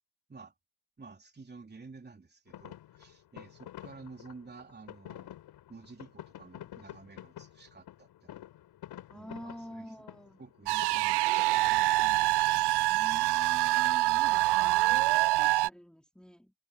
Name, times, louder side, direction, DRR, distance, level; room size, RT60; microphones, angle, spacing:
voice 1, 1.0-5.4 5.7-8.4 9.1-10.0 10.4-12.3, right 4 dB, 25° right, 3.7 m, -51 dB
sound 1, 2.5-12.5, left 12 dB, 80° left, 6.8 m, -49 dB
voice 2, 9.1-10.4 12.9-16.5, equal, ahead, 3.1 m, -47 dB
sound 2, 10.7-15.7, right 19 dB, 85° right, 0.5 m, -25 dB
cardioid pair, 80°, 39 cm